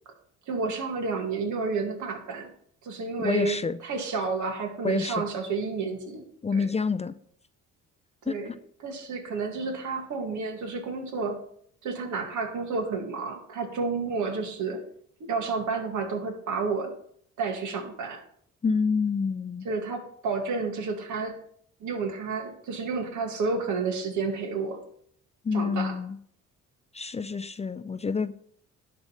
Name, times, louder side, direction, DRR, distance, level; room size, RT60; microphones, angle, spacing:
voice 1, 0.5-2.5 2.8-6.2 6.5-6.7 8.3-8.5 8.8-11.4 11.8-14.8 15.2-16.9 17.4-18.2 19.6-21.4 21.8-24.8 25.5-26.0, right 4 dB, 75° right, 3 dB, 2.2 m, -30 dB
voice 2, 3.2-3.8 4.8-5.2 6.4-7.1 8.3-8.6 18.6-19.7 25.4-26.2 26.9-28.3, left 5 dB, 20° left, 13 dB, 0.5 m, -28 dB
11.0 x 3.9 x 7.5 m, 0.63 s
cardioid pair, 90°, 30 cm